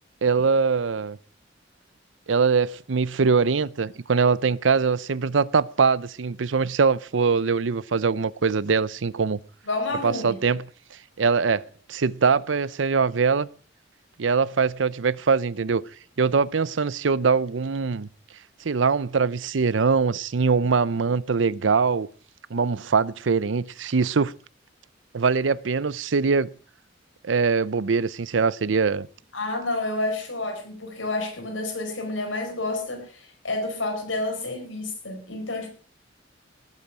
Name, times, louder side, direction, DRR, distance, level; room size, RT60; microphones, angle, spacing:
voice 1, 0.2-1.2 2.3-9.4 10.0-10.6 11.2-11.6 11.9-13.5 14.2-15.8 16.2-18.1 18.6-22.1 22.5-24.3 25.1-26.5 27.2-29.1, right 5 dB, 75° right, 0.6 m, -22 dB
voice 2, 9.6-10.4 29.3-35.7, left 2 dB, 80° left, 4.9 m, -29 dB
18.5 x 8.4 x 6.1 m
head